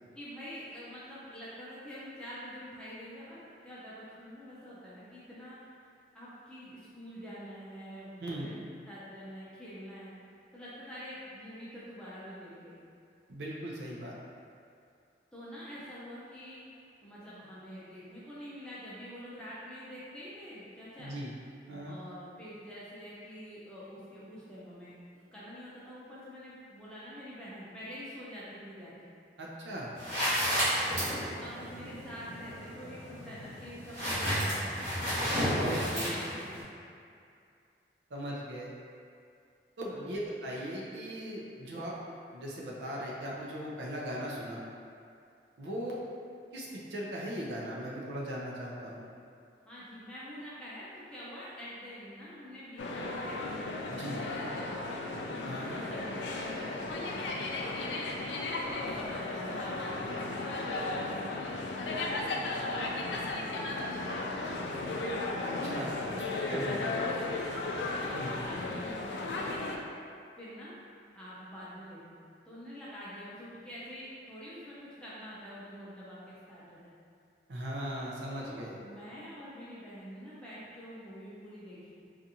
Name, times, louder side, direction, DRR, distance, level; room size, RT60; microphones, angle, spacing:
voice 1, 0.1-5.6 6.1-8.6 8.9-10.1 10.5-12.9 15.3-16.7 17.0-21.2 21.8-29.1 31.1-34.8 35.1-36.6 39.9-40.1 49.6-54.2 54.5-55.0 55.7-58.2 58.8-65.0 66.0-66.9 67.3-69.6 70.4-70.8 71.1-76.9 78.4-82.0, equal, 5° left, -10 dB, 0.5 m, -46 dB
voice 2, 8.2-8.5 13.3-14.2 21.0-21.3 21.7-22.0 29.4-29.9 35.6-36.1 38.1-38.7 39.8-41.9 42.3-44.6 45.6-46.0 46.5-49.1 53.9-54.2 55.4-55.8 65.4-66.2 66.5-66.8 68.1-68.3 77.5-78.8, equal, 80° right, -4 dB, 0.6 m, -38 dB
sound 1, 29.9-36.6, equal, 45° right, 1.3 m, -32 dB
sound 2, 52.8-69.8, left 2 dB, 80° left, 0.4 m, -35 dB
3.9 x 2.4 x 2.8 m, 2.4 s
head